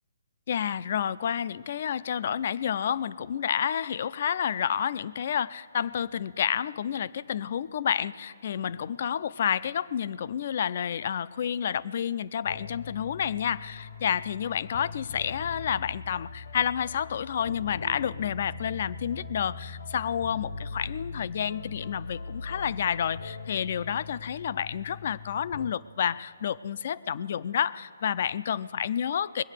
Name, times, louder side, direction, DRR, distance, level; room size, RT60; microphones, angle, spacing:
voice 1, 0.5-29.4, left 8 dB, 50° left, 18 dB, 0.4 m, -30 dB
sound 1, 12.4-25.7, left 4 dB, 70° left, 1.0 m, -41 dB
21.0 x 8.8 x 6.5 m, 2.4 s
hypercardioid pair, 150°, 0 cm